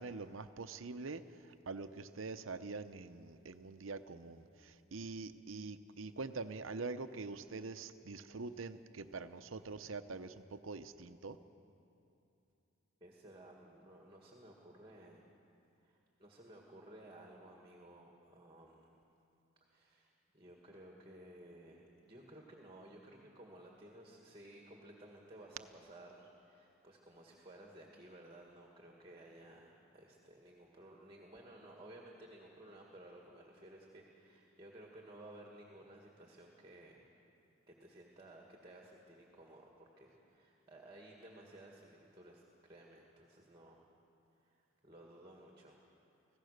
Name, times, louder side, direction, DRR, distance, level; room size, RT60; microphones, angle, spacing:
voice 1, 0.0-11.4, right 3 dB, 70° right, 10 dB, 0.8 m, -45 dB
voice 2, 13.0-15.3 15.8-18.9 19.7-37.0 37.7-43.8 44.4-44.6 44.8-45.8, right 1 dB, 20° right, 0 dB, 1.8 m, -56 dB
24.5 x 16.5 x 6.6 m, 2.7 s
head